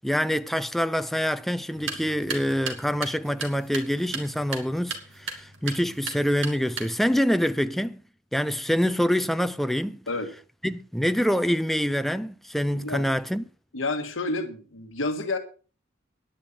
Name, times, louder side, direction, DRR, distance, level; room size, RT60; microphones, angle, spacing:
voice 1, 0.0-8.0 8.3-10.0 10.6-13.4, equal, ahead, 0.5 m, -26 dB
sound 1, 1.7-7.2, right 5 dB, 70° right, 2.9 m, -37 dB
voice 2, 12.7-13.0 13.7-15.4, left 2 dB, 80° left, 1.5 m, -29 dB
10.5 x 10.0 x 5.6 m
head